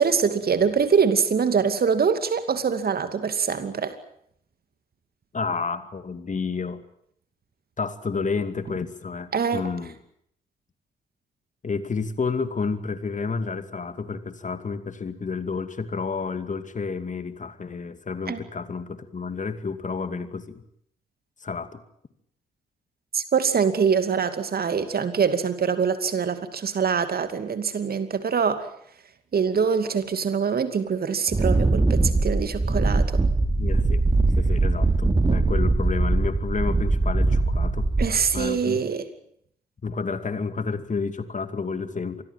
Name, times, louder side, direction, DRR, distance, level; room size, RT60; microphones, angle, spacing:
voice 1, 0.0-4.0 9.3-9.6 18.3-18.4 23.1-28.7 29.3-33.2 38.0-39.1, right 6 dB, 45° right, 2.5 m, -24 dB
voice 2, 5.3-6.8 7.8-10.0 11.6-20.6 21.4-21.8 33.6-34.0 34.4-37.9 38.2-38.8 39.8-42.2, left 4 dB, 35° left, 2.4 m, -30 dB
Wind, 31.3-38.4, right 2 dB, 20° right, 2.9 m, -22 dB
27.0 x 20.5 x 7.6 m
figure-of-eight pair, 40°, 21 cm